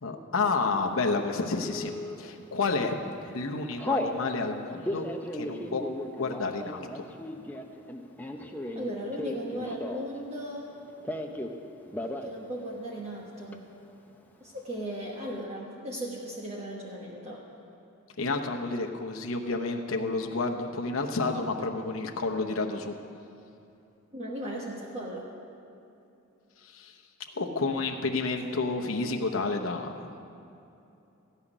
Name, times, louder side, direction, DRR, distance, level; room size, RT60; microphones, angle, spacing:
voice 1, 0.0-1.9 2.2-2.9 3.3-5.0 5.3-5.8 6.1-7.1 18.2-23.0 26.6-26.9 27.3-30.2, left 3 dB, 70° left, 3 dB, 0.9 m, -30 dB
Telephone, 1.6-2.2 2.7-3.0 3.3-4.2 4.7-10.2 10.5-11.6 11.9-12.3 12.6-12.7 13.0-13.6, left 1 dB, 10° left, 0.7 m, -35 dB
voice 2, 8.7-10.7 12.2-13.6 14.4-17.4 24.1-25.3, right 1 dB, 30° right, -3 dB, 1.2 m, -37 dB
15.0 x 5.7 x 9.9 m, 2.7 s
head